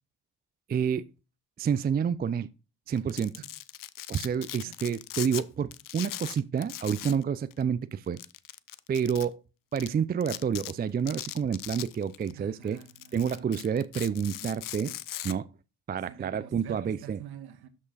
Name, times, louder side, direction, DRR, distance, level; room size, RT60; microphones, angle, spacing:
voice 1, 0.7-1.0 1.6-2.5 2.9-3.4 4.1-8.2 8.9-9.4 9.7-12.8 13.1-15.0 15.2-15.5 15.9-17.2, right 7 dB, 20° right, 0.5 m, -29 dB
Domestic sounds home sounds, 3.0-5.4 5.7-7.2 7.5-7.6 8.2-9.2 9.8-9.9 10.2-10.7 11.1-12.3 12.7-15.3, left 14 dB, 50° left, 0.6 m, -39 dB
voice 2, 12.3-13.4 16.1-17.7, right 11 dB, 55° right, 1.5 m, -47 dB
12.5 x 5.6 x 2.4 m
hypercardioid pair, 45°, 43 cm